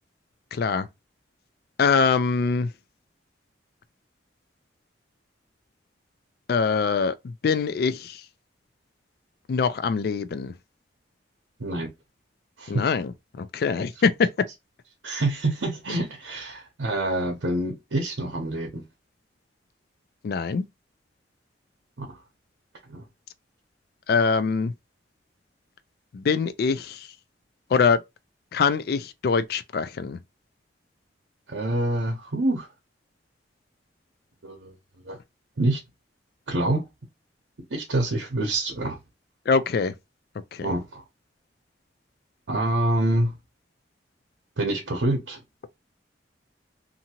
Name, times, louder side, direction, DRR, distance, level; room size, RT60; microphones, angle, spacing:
voice 1, 0.5-0.9 1.8-2.7 6.5-8.2 9.5-10.5 12.7-13.1 13.4-14.1 20.2-20.6 24.1-24.7 26.1-27.1 27.7-28.0 28.5-30.2 39.5-39.9 40.5-40.7, left 5 dB, 55° left, 0.3 m, -23 dB
voice 2, 11.6-11.9 12.6-12.8 15.0-18.8 22.0-22.2 22.9-23.0 31.5-32.7 34.4-34.7 35.0-35.2 35.6-35.8 36.5-36.8 37.7-39.0 40.6-41.0 42.5-43.4 44.6-45.4, right 1 dB, 85° right, 0.7 m, -26 dB
2.7 x 2.6 x 2.8 m
head